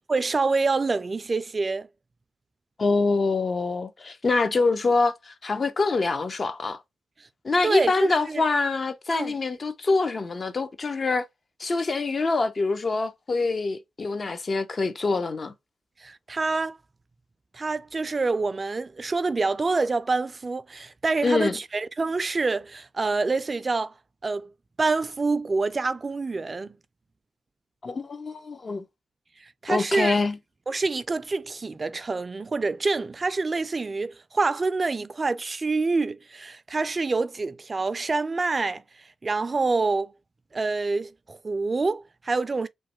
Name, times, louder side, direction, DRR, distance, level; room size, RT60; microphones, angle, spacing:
voice 1, 0.1-1.9 7.6-8.4 9.1-9.3 16.0-16.8 17.5-23.9 24.2-24.5 24.8-26.8 29.4-30.2 30.7-40.1 40.5-42.7, right 3 dB, 35° right, 0.4 m, -26 dB
voice 2, 2.8-6.8 7.4-11.3 11.6-15.5 21.2-21.6 27.8-28.8 29.7-30.4, left 3 dB, 45° left, 0.6 m, -25 dB
3.1 x 2.1 x 2.9 m
cardioid pair, 60°, 0 cm